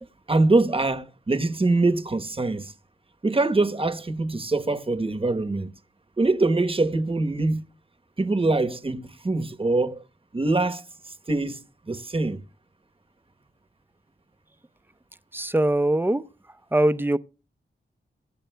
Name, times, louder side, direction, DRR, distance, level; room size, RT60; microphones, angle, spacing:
voice 1, 0.3-2.7 3.2-5.7 6.2-7.6 8.2-10.0 10.3-10.8 11.3-11.6 11.9-12.4, right 2 dB, 25° right, 1.0 m, -23 dB
voice 2, 15.3-16.2 16.7-17.2, right 1 dB, 10° right, 0.7 m, -21 dB
23.5 x 10.5 x 2.3 m
cardioid pair, 65°, 20 cm